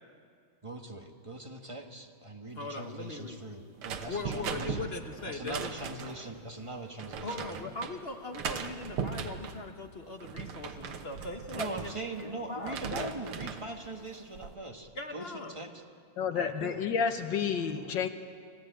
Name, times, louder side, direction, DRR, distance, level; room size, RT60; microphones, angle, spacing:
voice 1, 0.6-4.9 5.3-7.6 11.5-15.8 16.3-16.8, right 2 dB, 15° right, 3 dB, 1.2 m, -41 dB
voice 2, 2.6-3.4 4.1-5.7 7.2-11.9 12.2-12.8 14.9-15.6, left 3 dB, 40° left, 5 dB, 1.0 m, -40 dB
sound 1, 3.8-6.3 7.0-7.9 8.3-9.6 10.1-12.3 12.6-13.7 14.1-14.5, right 6 dB, 85° right, 2.0 m, -38 dB
voice 3, 16.2-18.1, left 6 dB, 65° left, 8 dB, 1.6 m, -30 dB
26.5 x 14.0 x 9.0 m, 2.2 s
omnidirectional pair, 2.4 m